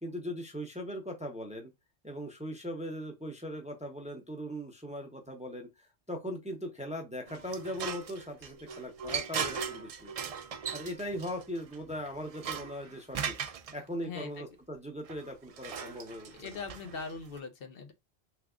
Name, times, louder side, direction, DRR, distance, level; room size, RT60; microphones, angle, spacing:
voice 1, 0.0-1.7 2.0-10.1 10.7-13.4 13.7-16.6, equal, 10° right, 0.6 m, -39 dB
sound 1, 7.3-13.7 15.1-17.4, right 7 dB, 55° right, 0.4 m, -39 dB
voice 2, 14.0-14.4 16.3-17.9, left 4 dB, 65° left, 0.9 m, -41 dB
3.4 x 3.3 x 2.4 m
omnidirectional pair, 1.1 m